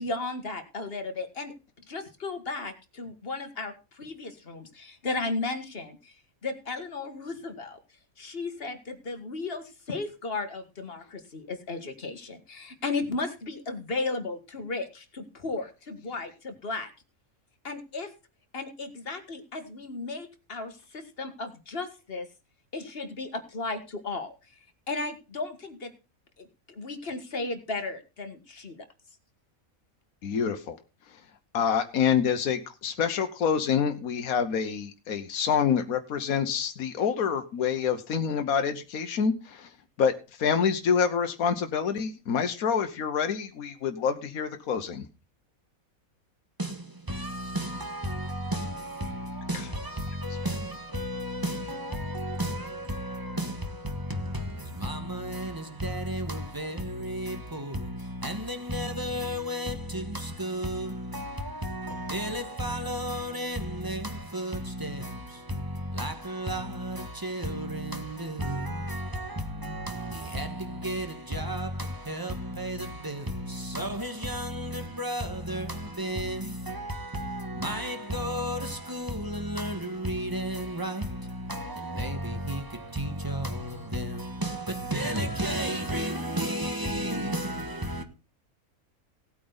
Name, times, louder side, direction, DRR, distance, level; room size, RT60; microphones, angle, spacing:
voice 1, 0.0-1.5 1.9-6.1 6.4-7.8 8.2-16.9 17.6-18.1 18.5-22.3 22.7-24.3 24.9-25.9 26.4-28.8, left 3 dB, 45° left, 1.8 m, -35 dB
voice 2, 30.2-30.8 31.5-39.7 40.0-40.1 40.4-45.0, left 7 dB, 85° left, 1.5 m, -27 dB
voice 3, 46.6-88.0, equal, 15° right, 1.6 m, -33 dB
17.5 x 8.7 x 4.0 m
omnidirectional pair, 1.5 m